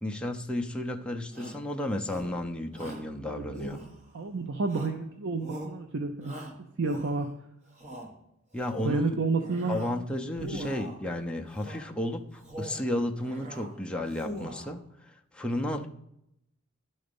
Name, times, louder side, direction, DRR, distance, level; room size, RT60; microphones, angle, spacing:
voice 1, 0.0-3.8 8.5-9.2 9.7-15.9, left 1 dB, 5° left, 2 dB, 0.5 m, -33 dB
Shout, 1.3-1.7 2.0-2.4 2.7-3.1 3.5-4.2 4.7-5.1 5.4-5.8 6.2-7.3 7.7-8.1 8.5-9.0 9.4-10.0 10.3-11.0 11.5-11.9 12.3-12.9 13.2-13.7 14.0-14.8, right 1 dB, 35° right, 1.4 m, -42 dB
voice 2, 3.3-3.6 4.1-6.4 6.8-7.3 8.8-9.8 10.5-10.7, right 3 dB, 60° right, 5 dB, 0.6 m, -30 dB
11.0 x 3.9 x 5.2 m, 0.80 s
head